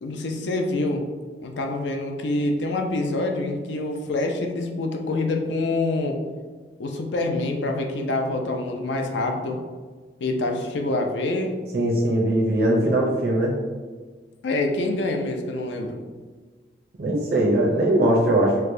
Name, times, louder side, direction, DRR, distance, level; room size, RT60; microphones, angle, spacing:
voice 1, 0.0-1.0 1.4-6.2 6.8-9.6 10.2-11.6 14.4-16.0, left 2 dB, 80° left, 3 dB, 0.4 m, -26 dB
voice 2, 11.7-13.6 17.0-18.6, right 1 dB, 55° right, -3 dB, 0.5 m, -20 dB
4.4 x 2.1 x 2.5 m, 1.4 s
head